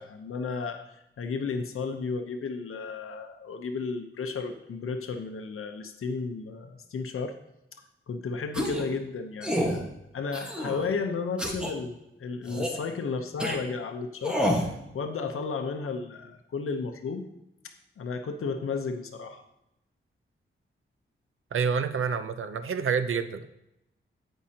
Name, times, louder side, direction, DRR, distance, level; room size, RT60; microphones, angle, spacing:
voice 1, 0.0-7.4 8.1-14.4 14.9-17.2 18.0-19.4, left 4 dB, 85° left, 6 dB, 0.8 m, -33 dB
sound 1, 8.5-8.9 9.4-9.8 10.3-10.8 11.4-11.7 12.5-12.8 13.4-13.6 14.2-14.7, equal, 5° right, 1.3 m, -28 dB
voice 2, 21.5-23.5, right 6 dB, 75° right, 10 dB, 0.6 m, -28 dB
16.0 x 5.5 x 2.8 m, 0.86 s
wide cardioid pair, 150°, 21 cm